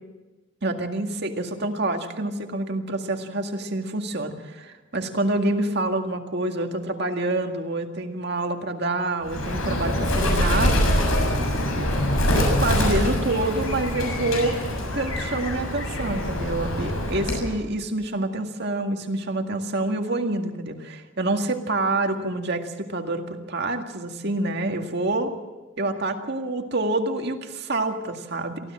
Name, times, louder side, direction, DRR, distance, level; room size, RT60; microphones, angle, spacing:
voice 1, 0.6-10.8 11.7-12.0 12.3-14.6 14.9-25.3 25.8-28.7, right 2 dB, 55° right, 4 dB, 2.0 m, -27 dB
Bird, 9.3-17.5, left 1 dB, 85° left, 7.1 m, -24 dB
23.5 x 16.0 x 7.5 m, 1.2 s
head